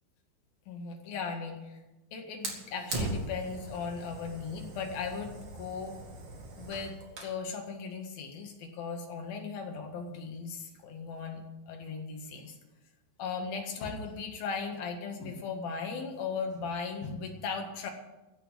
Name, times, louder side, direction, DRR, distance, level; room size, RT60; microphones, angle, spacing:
voice 1, 0.7-1.8 2.1-6.0 6.6-12.6 13.2-17.9, left 5 dB, 60° left, 2 dB, 3.4 m, -37 dB
Fire, 2.4-7.4, right 2 dB, 40° right, 2.7 m, -40 dB
14.5 x 7.1 x 9.8 m, 1.0 s
omnidirectional pair, 5.1 m